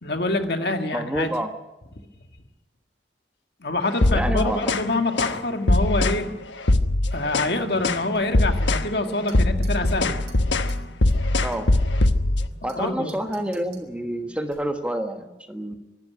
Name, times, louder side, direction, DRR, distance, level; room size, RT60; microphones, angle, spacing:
voice 1, 0.0-1.3 3.6-6.3 7.1-10.2 12.6-13.2, left 2 dB, 60° left, 6 dB, 2.0 m, -26 dB
voice 2, 0.9-1.5 4.1-4.8 11.4-11.7 12.6-15.8, right 1 dB, 5° right, 6 dB, 1.3 m, -28 dB
sound 1, 3.9-4.9 5.2-5.4 5.7-6.2 6.6-7.6 7.8-8.1 8.3-8.9 9.2-12.5, left 2 dB, 85° left, 1.1 m, -21 dB
sound 2, 8.1-9.4 9.6-9.9 10.3-10.4 10.7-10.8 11.1-12.8 13.1-13.9 14.5-14.9, right 2 dB, 70° right, 4.4 m, -48 dB
sound 3, 9.1-14.4, equal, 30° left, 5.5 m, -49 dB
24.5 x 12.0 x 9.6 m, 0.98 s
head